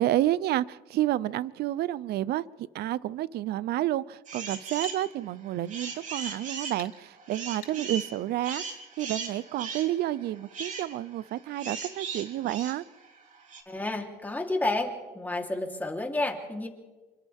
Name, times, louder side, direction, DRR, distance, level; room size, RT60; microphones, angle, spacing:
voice 1, 0.0-2.4 2.7-12.8, right 14 dB, 70° right, 19 dB, 0.7 m, -30 dB
sound 1, 4.2-5.0 5.5-13.6, right 5 dB, 45° right, 3.6 m, -38 dB
sound 2, 4.8-5.0 6.8-7.0 7.6-7.8, left 10 dB, 80° left, 4.9 m, -46 dB
voice 2, 13.7-16.7, left 2 dB, 10° left, 1 dB, 3.6 m, -30 dB
28.5 x 25.0 x 3.7 m, 1.2 s
cardioid pair, 110°, 17 cm